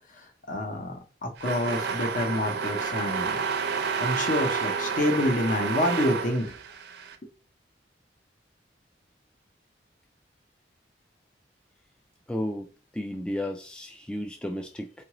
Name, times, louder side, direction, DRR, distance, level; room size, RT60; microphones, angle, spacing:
voice 1, 0.2-3.5 4.0-6.6, left 1 dB, 45° left, 0.9 m, -28 dB
sound 1, 1.4-7.1, right 5 dB, 65° right, 0.6 m, -30 dB
voice 2, 12.3-12.7 12.9-15.0, left 1 dB, 5° left, 0.3 m, -33 dB
4.7 x 2.5 x 3.0 m
head